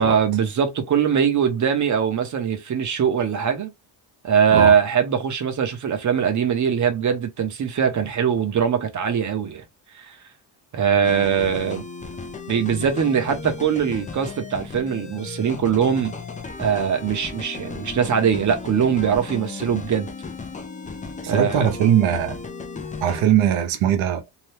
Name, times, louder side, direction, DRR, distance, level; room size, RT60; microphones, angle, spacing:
voice 1, 0.0-3.7 4.2-9.6 10.1-10.2 10.7-11.8 12.5-16.1 16.6-20.1 21.3-21.7, right 7 dB, 40° right, 0.8 m, -21 dB
sound 1, 11.0-23.2, left 4 dB, 20° left, 0.4 m, -35 dB
voice 2, 21.2-22.4 23.0-24.2, right 9 dB, 85° right, 0.9 m, -20 dB
2.8 x 2.2 x 3.2 m
cardioid pair, 145°, 47 cm